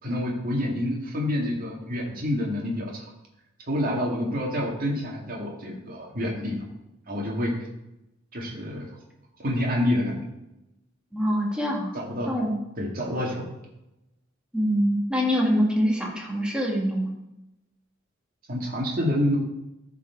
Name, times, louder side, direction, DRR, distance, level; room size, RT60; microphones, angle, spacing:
voice 1, 0.0-3.0 3.7-6.6 7.1-7.5 8.3-8.9 9.4-10.2 11.9-12.4 12.8-13.4 18.5-19.4, left 1 dB, 45° right, -2 dB, 2.0 m, -27 dB
voice 2, 11.1-12.0 12.3-12.6 14.5-17.1, equal, 5° right, -2 dB, 2.0 m, -24 dB
13.5 x 4.8 x 4.6 m, 0.92 s
head